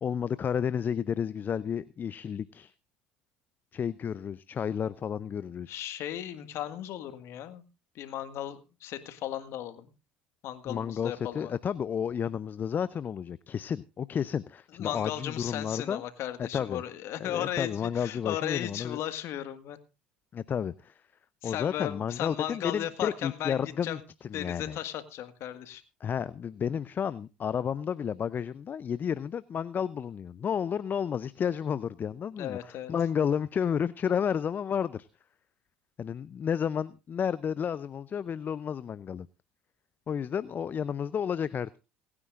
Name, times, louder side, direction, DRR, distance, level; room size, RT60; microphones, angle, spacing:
voice 1, 0.0-2.7 3.7-5.8 10.6-16.0 16.4-16.8 17.2-19.0 20.3-21.0 21.4-24.8 26.0-35.1 36.0-39.3 40.1-41.8, left 8 dB, 35° left, 0.5 m, -31 dB
voice 2, 5.7-7.6 7.9-9.9 10.4-11.5 14.8-19.8 21.4-24.0 24.3-25.8 32.4-32.9, left 12 dB, 55° left, 1.7 m, -36 dB
27.0 x 9.8 x 2.5 m
hypercardioid pair, 70°, 5 cm